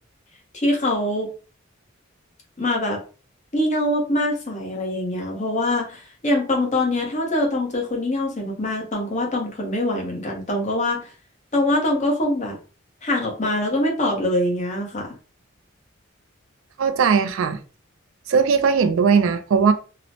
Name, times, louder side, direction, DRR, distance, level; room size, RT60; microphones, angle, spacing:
voice 1, 0.5-1.3 2.6-3.0 3.5-11.1 11.5-12.6 13.0-15.1, left 1 dB, 35° left, 0.8 m, -23 dB
voice 2, 16.8-17.6 18.3-19.7, right 6 dB, 75° right, 0.4 m, -18 dB
3.0 x 2.0 x 2.7 m
head